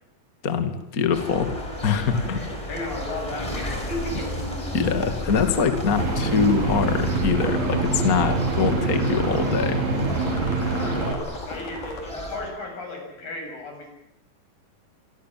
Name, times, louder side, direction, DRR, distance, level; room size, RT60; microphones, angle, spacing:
voice 1, 0.4-1.5 1.8-2.4 4.7-9.9, left 5 dB, 30° left, 8 dB, 2.1 m, -23 dB
sound 1, 1.1-12.5, equal, 10° left, 5.3 m, -34 dB
voice 2, 2.1-4.3 8.1-8.4 10.6-13.9, left 2 dB, 80° left, 3 dB, 9.3 m, -34 dB
sound 2, 5.2-12.0, left 2 dB, 65° left, 6.6 m, -38 dB
sound 3, 6.0-11.1, right 3 dB, 55° right, 4.1 m, -25 dB
27.0 x 24.5 x 7.5 m, 0.76 s
omnidirectional pair, 3.9 m